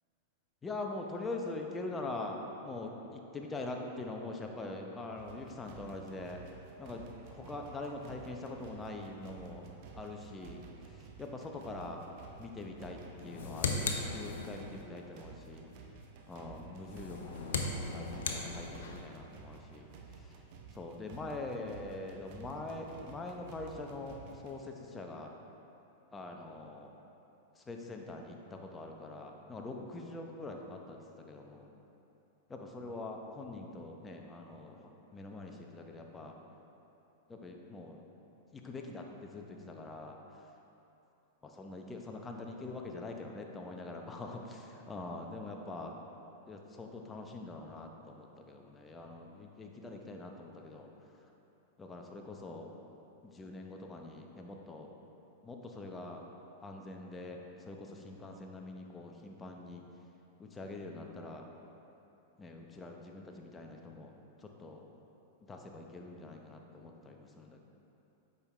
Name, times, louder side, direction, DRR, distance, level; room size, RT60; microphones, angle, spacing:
voice 1, 0.6-6.4 6.8-7.0 7.3-9.6 10.0-12.0 12.4-15.6 16.3-19.9 20.7-24.2 24.4-25.3 26.1-26.9 27.6-31.6 32.5-34.8 35.1-36.3 37.3-38.0 38.5-40.2 41.5-46.0 46.5-50.9 51.8-52.7 53.2-54.9 55.4-56.2 56.6-59.8 60.4-61.5 62.4-64.8 65.5-67.6, left 2 dB, 15° left, 2 dB, 0.8 m, -44 dB
sound 1, 5.2-24.6, right 5 dB, 50° right, 0.8 m, -53 dB
sound 2, 13.2-14.8 16.8-19.1, left 4 dB, 70° left, 0.6 m, -37 dB
8.3 x 5.4 x 3.3 m, 2.9 s
hypercardioid pair, 100°, 0 cm